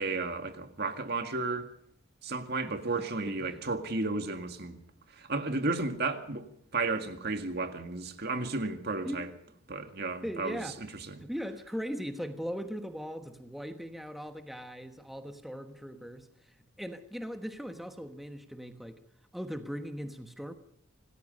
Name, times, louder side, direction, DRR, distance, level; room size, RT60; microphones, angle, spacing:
voice 1, 0.0-1.7 2.2-4.8 5.2-6.5 6.7-9.3 9.7-10.6 11.1-11.2, right 3 dB, 50° right, 1.9 m, -33 dB
voice 2, 3.3-3.6 9.0-9.3 10.2-10.8 11.2-19.0 19.3-20.5, equal, ahead, 1.2 m, -39 dB
26.5 x 19.0 x 5.3 m
head